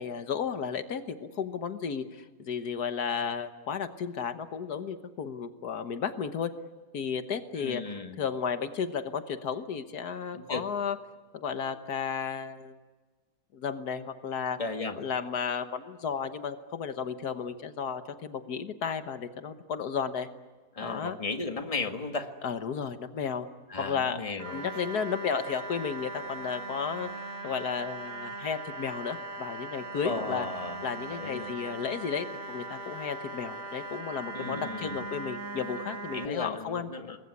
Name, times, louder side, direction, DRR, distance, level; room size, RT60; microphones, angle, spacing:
voice 1, 0.0-6.5 6.9-7.8 8.2-11.0 11.3-12.7 13.5-14.6 15.0-20.3 20.8-21.2 22.4-23.5 23.8-24.2 24.5-27.1 27.4-30.5 30.8-36.9, left 6 dB, 80° left, 9 dB, 1.8 m, -33 dB
voice 2, 7.6-8.2 10.3-10.6 14.6-15.0 20.7-22.3 23.7-24.7 30.0-30.8 31.1-31.5 34.3-35.1 36.1-37.2, left 3 dB, 20° left, 5 dB, 1.9 m, -35 dB
sound 1, 24.4-36.3, right 2 dB, 60° right, 2.4 m, -39 dB
28.0 x 21.5 x 9.6 m, 1.4 s
omnidirectional pair, 1.6 m